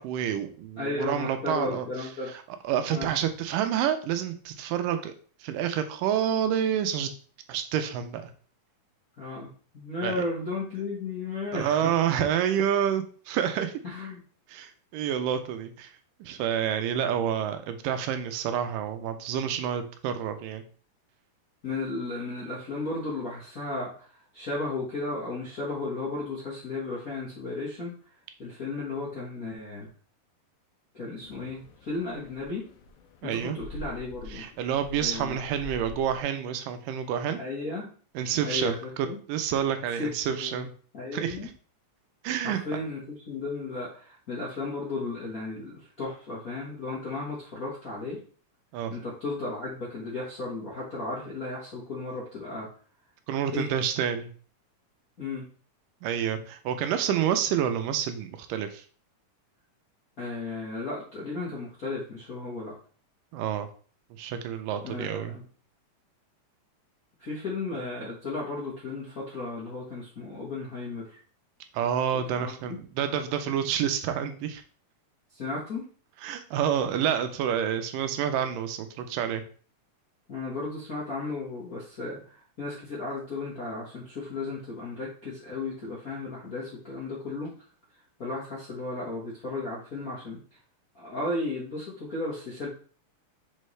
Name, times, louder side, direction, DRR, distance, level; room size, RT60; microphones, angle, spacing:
voice 1, 0.0-1.9 2.6-5.1 5.4-7.1 7.5-8.3 10.0-10.2 11.5-13.7 14.5-15.9 16.2-20.6 33.2-33.6 34.3-37.4 38.2-40.7 41.1-41.5 42.2-42.6 48.7-48.9 53.3-54.3 56.0-58.8 63.3-63.7 64.2-65.3 71.7-74.6 76.2-79.4, right 9 dB, 80° right, 8 dB, 2.3 m, -28 dB
voice 2, 0.8-2.3 2.9-3.1 9.2-9.5 9.7-11.9 13.8-14.2 21.6-27.9 28.4-29.9 30.9-32.6 33.2-34.4 35.0-35.4 37.3-37.9 38.4-39.2 40.0-40.6 40.9-41.5 42.4-48.2 48.9-52.7 53.5-53.7 55.2-55.5 60.2-62.7 64.8-65.4 67.2-71.2 72.4-72.8 75.3-75.9 80.3-87.5 88.2-90.4 90.9-92.7, left 3 dB, 55° left, -5 dB, 1.0 m, -34 dB
sound 1, 31.2-36.2, left 1 dB, 75° left, 2.2 m, -45 dB
6.5 x 4.5 x 3.2 m, 0.42 s
omnidirectional pair, 3.9 m